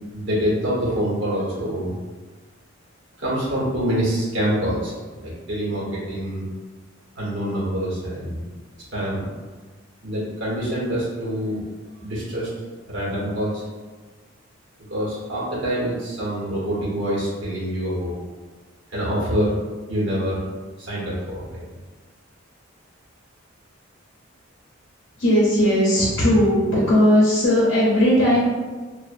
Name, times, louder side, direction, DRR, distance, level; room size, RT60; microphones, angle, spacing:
voice 1, 0.0-1.9 3.2-6.5 7.1-8.4 8.9-9.3 10.0-11.6 12.0-12.5 12.9-13.6 14.9-18.1 18.9-19.6 19.9-20.5 20.8-21.6, equal, 75° right, -6 dB, 1.1 m, -25 dB
voice 2, 25.2-28.5, equal, 85° left, -7 dB, 0.7 m, -17 dB
2.6 x 2.4 x 2.4 m, 1.3 s
head